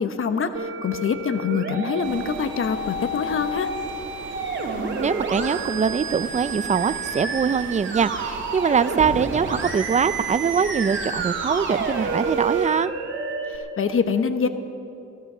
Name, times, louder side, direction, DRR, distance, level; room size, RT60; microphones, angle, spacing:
voice 1, 0.0-3.7 13.5-14.5, left 6 dB, 45° left, 9 dB, 1.0 m, -25 dB
Musical instrument, 0.5-13.6, right 3 dB, 40° right, 2.3 m, -30 dB
sound 1, 2.0-12.7, right 5 dB, 80° right, 1.8 m, -38 dB
voice 2, 5.0-12.9, right 6 dB, 25° right, 15 dB, 0.5 m, -23 dB
16.5 x 13.0 x 6.2 m, 2.7 s
cardioid pair, 90°, 30 cm